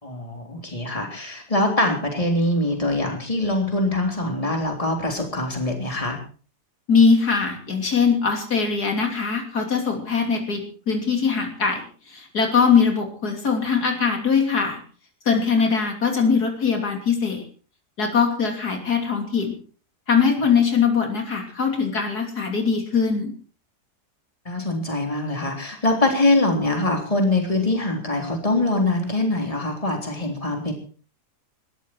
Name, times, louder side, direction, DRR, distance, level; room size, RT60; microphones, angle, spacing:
voice 1, 0.0-6.2 24.5-30.7, left 2 dB, 20° left, 2 dB, 3.7 m, -23 dB
voice 2, 6.9-14.8 15.3-17.4 18.0-19.6 20.1-23.3, left 5 dB, 70° left, 3 dB, 3.6 m, -21 dB
20.5 x 13.5 x 4.6 m, 0.41 s
omnidirectional pair, 1.7 m